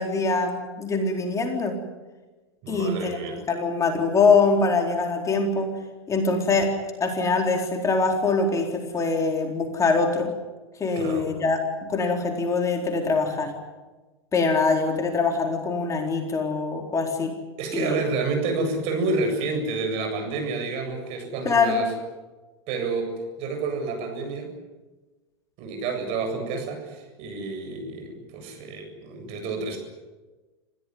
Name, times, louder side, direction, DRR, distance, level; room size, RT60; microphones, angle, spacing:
voice 1, 0.0-1.8 2.7-3.2 3.5-5.8 6.1-6.7 7.0-10.3 10.8-13.5 14.3-17.4 17.7-18.0 21.4-21.8, left 4 dB, 20° left, 3 dB, 4.1 m, -23 dB
voice 2, 2.6-3.4 11.0-11.3 17.6-21.9 22.7-24.5 25.6-29.8, right 3 dB, 45° right, 5 dB, 7.9 m, -29 dB
28.0 x 16.0 x 9.8 m, 1.2 s
hypercardioid pair, 95°, 14 cm